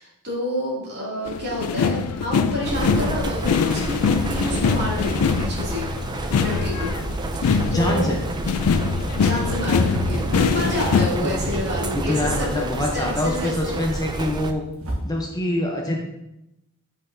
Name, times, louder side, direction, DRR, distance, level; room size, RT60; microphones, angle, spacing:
voice 1, 0.0-5.9 6.4-7.0 7.3-8.1 9.1-13.8, left 1 dB, 50° right, -5 dB, 2.4 m, -29 dB
sound 1, 1.3-11.1, left 6 dB, 80° left, 0.4 m, -23 dB
sound 2, 2.6-14.5, right 2 dB, 20° right, 0.3 m, -29 dB
voice 2, 7.6-8.2 11.2-11.4 11.9-14.6 15.0-16.0, left 1 dB, 15° left, 0 dB, 0.6 m, -25 dB
sound 3, 10.1-12.0 13.1-13.2 13.8-15.1, equal, 65° right, 1.4 m, -34 dB
7.9 x 5.5 x 2.6 m, 0.87 s
head